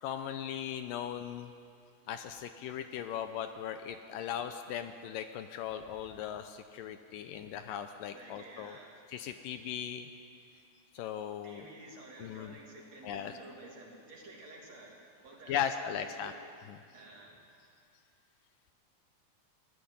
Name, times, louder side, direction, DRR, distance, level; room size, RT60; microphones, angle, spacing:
voice 1, 0.0-1.5 2.1-8.8 9.1-10.1 10.9-11.7 12.2-12.6 13.0-13.3 15.5-16.3 16.7-16.8, left 9 dB, 80° left, 8 dB, 2.2 m, -38 dB
voice 2, 8.1-9.0 11.4-16.3 16.9-17.4, right 2 dB, 50° right, -2 dB, 3.9 m, -51 dB
19.0 x 14.0 x 9.9 m, 2.3 s
omnidirectional pair, 4.2 m